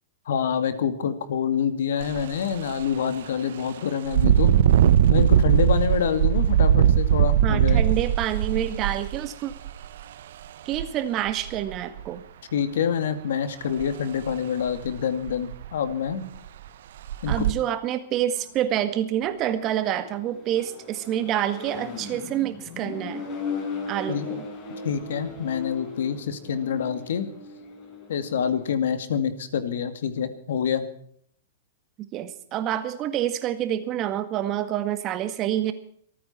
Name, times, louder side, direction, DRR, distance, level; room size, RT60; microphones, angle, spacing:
voice 1, 0.3-4.5 5.1-7.9 12.5-16.2 17.2-17.5 24.1-24.3 24.8-27.3 28.1-30.8, left 7 dB, 75° left, 10 dB, 2.3 m, -26 dB
Engine, 2.0-2.2 2.7-2.8 4.1-9.9 10.7-10.8 11.3-12.0 13.8-13.9 14.3-14.4 14.9-15.0 15.3-15.8 16.4-16.5 17.1-17.5, right 10 dB, 70° right, 0.8 m, -20 dB
voice 2, 7.4-9.5 10.6-12.2 17.3-23.3 23.9-24.5 32.1-35.7, right 11 dB, 35° right, 10 dB, 1.8 m, -27 dB
Accelerating revving vroom, 18.2-28.7, left 4 dB, 35° left, 6.5 m, -38 dB
26.5 x 9.3 x 4.4 m, 0.63 s
hypercardioid pair, 135°, 0 cm